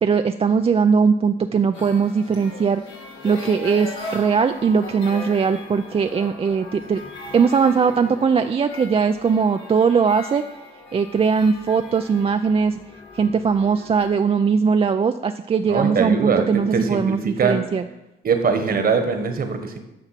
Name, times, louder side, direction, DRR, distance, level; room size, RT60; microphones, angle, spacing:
voice 1, 0.0-2.8 3.2-7.0 7.3-10.4 10.9-12.8 13.1-17.8, right 5 dB, 30° right, 7 dB, 0.4 m, -20 dB
sound 1, 1.7-14.1, left 2 dB, 80° left, 2.5 m, -38 dB
voice 2, 15.7-17.6 18.2-19.8, right 5 dB, 50° right, 7 dB, 1.4 m, -22 dB
8.9 x 5.9 x 5.8 m, 0.93 s
cardioid pair, 90°, 20 cm